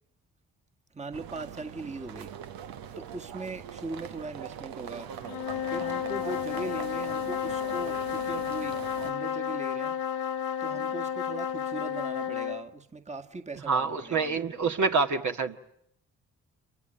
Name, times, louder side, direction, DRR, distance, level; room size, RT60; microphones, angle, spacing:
voice 1, 0.9-2.3 3.0-5.1 5.7-10.0 10.6-14.7, right 3 dB, 20° right, 1.7 m, -40 dB
sound 1, 1.1-9.1, right 9 dB, 65° right, 1.2 m, -42 dB
sound 2, 5.2-12.7, left 8 dB, 70° left, 1.5 m, -32 dB
voice 2, 13.7-15.6, right 4 dB, 50° right, 1.8 m, -27 dB
28.0 x 24.0 x 8.8 m
hypercardioid pair, 45°, 38 cm